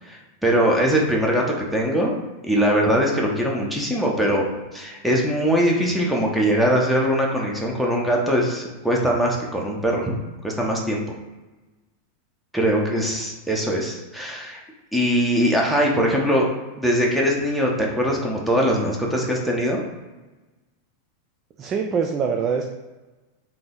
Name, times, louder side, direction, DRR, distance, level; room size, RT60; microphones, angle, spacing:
voice 1, 0.0-2.2 2.4-4.5 4.7-10.1 10.4-11.0 12.5-14.6 14.9-16.5 16.8-19.9, equal, ahead, -2 dB, 1.0 m, -21 dB
voice 2, 21.6-22.6, right 6 dB, 35° right, 2 dB, 0.4 m, -23 dB
3.8 x 2.9 x 3.8 m, 1.1 s
hypercardioid pair, 95°, 0 cm